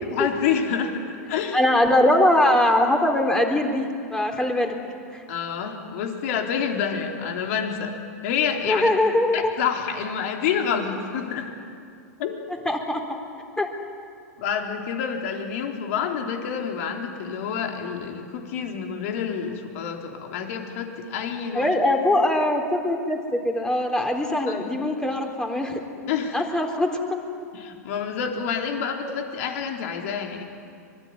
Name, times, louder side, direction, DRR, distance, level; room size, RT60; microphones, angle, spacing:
voice 1, 0.1-1.6 5.3-7.9 8.2-8.9 9.3-11.5 12.2-12.4 14.4-21.7 24.5-24.7 26.1-26.5 27.5-30.4, left 7 dB, 60° left, 2 dB, 4.0 m, -28 dB
voice 2, 1.5-4.7 5.1-5.2 8.7-9.5 12.7-13.2 13.6-13.7 21.5-25.8 26.3-27.2 29.0-29.1, left 1 dB, 10° left, 3 dB, 3.7 m, -22 dB
25.0 x 21.5 x 9.7 m, 2.3 s
hypercardioid pair, 110°, 9 cm